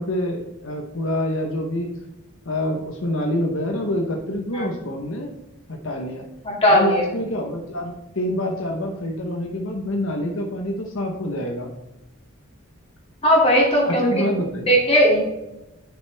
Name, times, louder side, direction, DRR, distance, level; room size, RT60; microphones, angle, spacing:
voice 1, 0.0-2.0 2.5-5.3 5.7-6.3 6.7-11.7 13.8-14.7, left 1 dB, 70° left, 2 dB, 0.9 m, -26 dB
voice 2, 6.4-7.1 13.2-14.2 14.7-15.2, equal, 30° left, -4 dB, 2.5 m, -17 dB
9.3 x 6.5 x 3.4 m, 0.94 s
head